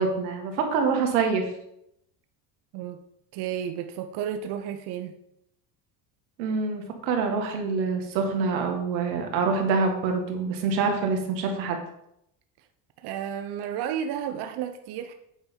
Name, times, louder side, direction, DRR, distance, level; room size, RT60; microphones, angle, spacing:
voice 1, 0.0-1.5 6.4-11.8, right 4 dB, 90° right, 3 dB, 2.0 m, -26 dB
voice 2, 3.3-5.1 13.0-15.1, right 9 dB, 50° right, 7 dB, 0.8 m, -32 dB
8.7 x 5.3 x 4.5 m, 0.78 s
supercardioid pair, 105°, 50 cm